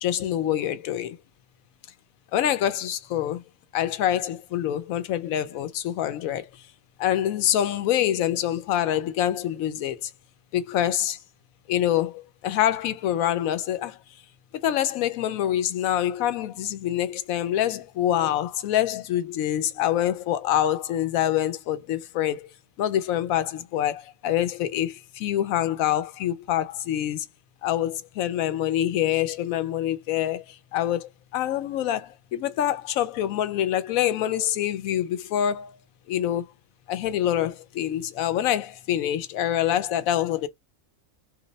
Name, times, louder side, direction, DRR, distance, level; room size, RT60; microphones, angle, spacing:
voice 1, 0.0-1.2 2.3-3.4 3.7-6.4 7.0-10.0 10.5-11.2 11.7-12.1 12.4-13.9 14.6-22.4 22.8-27.2 27.6-30.4 30.7-35.7 36.1-36.4 36.9-40.5, left 11 dB, 80° left, 1.0 m, -25 dB
3.0 x 2.6 x 4.0 m
omnidirectional pair, 1.4 m